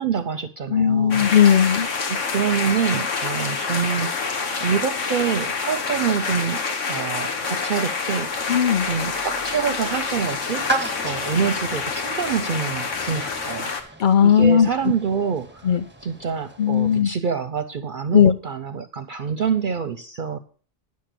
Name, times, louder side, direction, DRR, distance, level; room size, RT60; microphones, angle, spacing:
voice 1, 0.0-1.2 2.1-6.6 6.9-8.3 8.9-10.7 11.0-14.0 14.2-20.4, right 7 dB, 55° right, 9 dB, 0.6 m, -26 dB
voice 2, 0.7-1.9 8.5-8.9 14.0-14.7 15.1-15.3 15.6-15.8 16.6-17.1 18.1-18.3, left 8 dB, 55° left, 10 dB, 0.6 m, -17 dB
sound 1, 1.1-13.8, left 4 dB, 90° left, 1.5 m, -27 dB
sound 2, 9.4-17.0, right 2 dB, 15° right, 0.4 m, -35 dB
10.5 x 6.6 x 6.7 m, 0.43 s
omnidirectional pair, 1.2 m